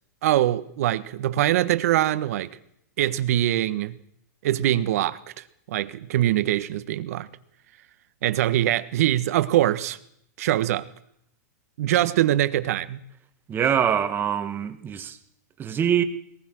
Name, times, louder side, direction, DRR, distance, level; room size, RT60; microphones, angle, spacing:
voice 1, 0.2-2.5 3.0-4.0 4.4-5.2 5.7-7.3 8.2-10.0 10.4-10.9 11.8-13.0, right 13 dB, 65° right, 1.4 m, -23 dB
voice 2, 13.5-15.2 15.6-16.0, right 8 dB, 25° right, 1.8 m, -24 dB
21.5 x 20.0 x 6.3 m
hypercardioid pair, 120°, 9 cm